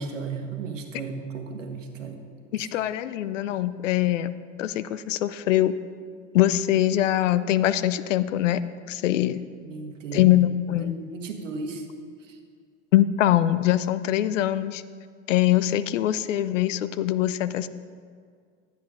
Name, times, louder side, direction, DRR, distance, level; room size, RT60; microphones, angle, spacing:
voice 1, 0.0-2.2 2.6-2.7 9.6-10.3 10.7-11.8 12.3-12.4, right 4 dB, 90° right, 5 dB, 1.3 m, -35 dB
voice 2, 2.5-4.3 4.6-5.7 6.3-8.6 8.9-9.4 10.1-11.0 12.9-14.8 15.3-17.7, left 13 dB, 85° left, 15 dB, 0.6 m, -23 dB
12.5 x 8.2 x 4.9 m, 2.1 s
hypercardioid pair, 85°, 37 cm